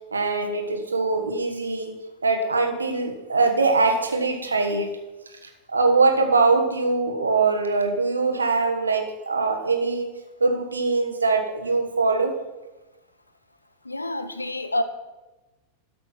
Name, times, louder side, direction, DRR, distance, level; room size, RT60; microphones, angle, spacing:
voice 1, 0.1-2.0 2.2-5.0 5.7-10.1 10.4-12.3, right 3 dB, 75° right, 5 dB, 1.3 m, -22 dB
voice 2, 13.8-14.8, left 1 dB, 80° left, 10 dB, 0.8 m, -27 dB
12.5 x 6.2 x 5.8 m, 1.1 s
figure-of-eight pair, 90°, 0 cm